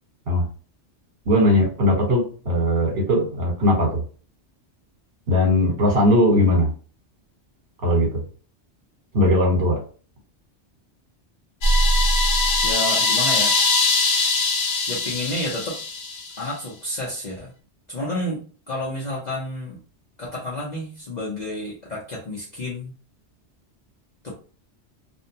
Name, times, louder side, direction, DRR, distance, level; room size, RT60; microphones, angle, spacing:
voice 1, 1.2-4.0 5.3-6.7 7.8-8.2 9.1-9.8, left 1 dB, 50° right, -2 dB, 1.3 m, -19 dB
sound 1, 11.6-16.4, left 2 dB, 85° left, 1.0 m, -21 dB
voice 2, 12.6-13.7 14.9-15.8 16.4-17.5 17.9-19.8 20.2-22.9 24.2-24.3, left 1 dB, 45° left, -4 dB, 0.7 m, -30 dB
2.6 x 2.2 x 2.7 m, 0.39 s
omnidirectional pair, 1.2 m